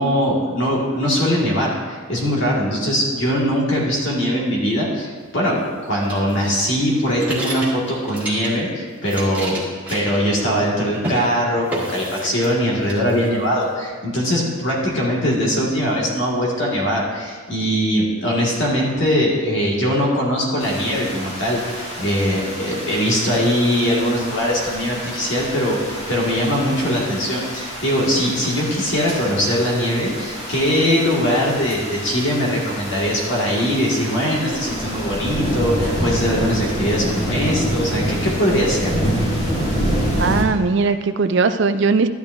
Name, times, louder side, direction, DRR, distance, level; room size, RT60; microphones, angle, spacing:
voice 1, 0.0-9.6 9.9-38.9, equal, 55° left, -4 dB, 2.0 m, -21 dB
sound 1, 6.1-8.7 9.0-10.7 10.9-11.3 11.7-12.6 12.9-13.7, right 1 dB, 5° right, 2.1 m, -30 dB
sound 2, 20.6-40.4, equal, 30° left, 2.4 m, -27 dB
voice 2, 40.2-42.1, right 4 dB, 55° right, 10 dB, 0.4 m, -18 dB
12.0 x 10.5 x 2.7 m, 1.5 s
head